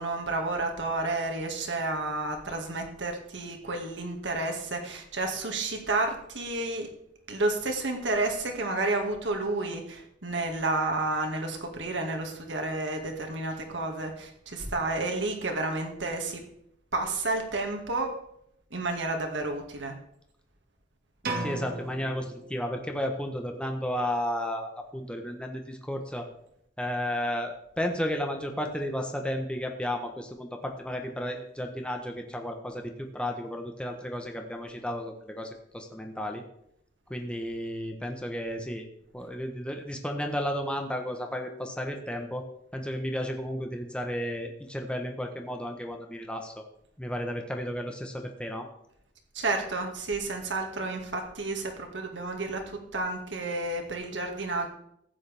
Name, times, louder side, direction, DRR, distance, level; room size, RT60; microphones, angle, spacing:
voice 1, 0.0-6.9 7.3-16.4 16.9-18.1 18.7-19.9 49.3-54.7, right 2 dB, 80° right, 3 dB, 2.0 m, -31 dB
sound 1, 21.2-23.1, right 2 dB, 55° right, 1.7 m, -36 dB
voice 2, 21.4-26.3 26.8-36.4 37.1-38.9 39.1-42.4 42.7-46.6 47.0-48.7, equal, 5° left, 3 dB, 1.0 m, -33 dB
14.5 x 9.5 x 3.5 m, 0.73 s
head